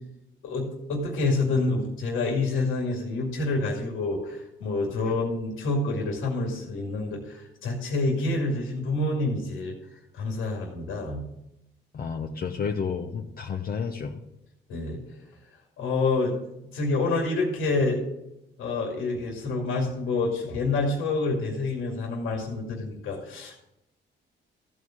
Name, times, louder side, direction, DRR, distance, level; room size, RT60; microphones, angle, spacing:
voice 1, 0.4-9.7 10.1-11.2 14.7-15.2 15.8-16.4 16.7-18.0 18.6-23.6, left 3 dB, 80° left, 0 dB, 2.4 m, -27 dB
voice 2, 11.9-14.2, left 6 dB, 50° left, 3 dB, 1.0 m, -31 dB
14.0 x 4.8 x 7.4 m, 0.87 s
cardioid pair, 90°, 20 cm